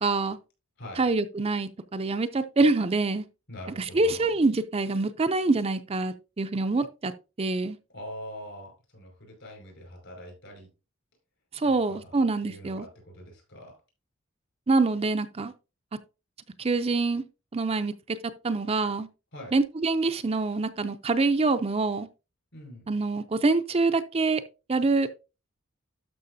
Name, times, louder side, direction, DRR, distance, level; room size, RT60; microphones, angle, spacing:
voice 1, 0.0-0.4 1.0-3.2 3.9-7.1 7.4-7.8 11.5-12.9 14.7-15.5 16.6-17.2 17.5-19.1 19.5-22.1 22.9-24.4 24.7-25.1, right 3 dB, 30° right, 0.5 m, -25 dB
voice 2, 3.5-4.3 7.9-10.7 11.6-13.8 19.3-19.5 22.5-22.9, equal, 65° left, 5.3 m, -43 dB
12.5 x 5.6 x 2.7 m
head